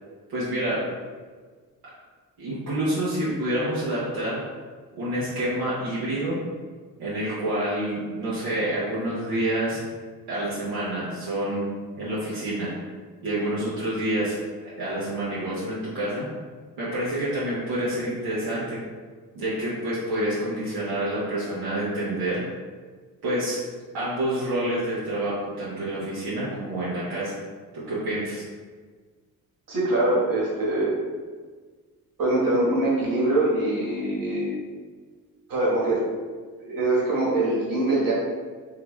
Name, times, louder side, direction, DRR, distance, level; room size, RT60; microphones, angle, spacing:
voice 1, 0.3-0.9 2.4-4.4 4.9-6.4 7.0-9.8 10.3-11.7 12.0-12.7 13.2-14.4 14.6-16.3 16.8-18.8 19.3-22.5 23.2-23.6 23.9-27.3 27.7-28.4, right 1 dB, 90° right, -9 dB, 0.9 m, -28 dB
voice 2, 29.7-30.9 32.2-34.6 35.5-36.0 36.6-38.1, right 2 dB, 60° right, -7 dB, 1.5 m, -23 dB
3.7 x 2.9 x 2.3 m, 1.5 s
supercardioid pair, 65°, 37 cm